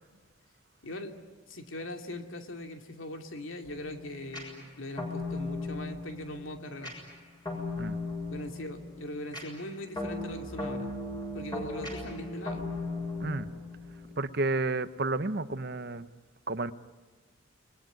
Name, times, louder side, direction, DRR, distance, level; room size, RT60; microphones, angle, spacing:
voice 1, 0.8-1.2 1.5-6.9 8.3-10.9 11.3-12.7, left 1 dB, 80° left, 5 dB, 2.6 m, -40 dB
sound 1, 3.6-14.3, left 2 dB, 20° left, 6.6 m, -38 dB
voice 2, 14.2-16.1 16.5-16.7, right 3 dB, 50° right, 12 dB, 0.9 m, -31 dB
28.5 x 21.5 x 9.2 m, 1.4 s
head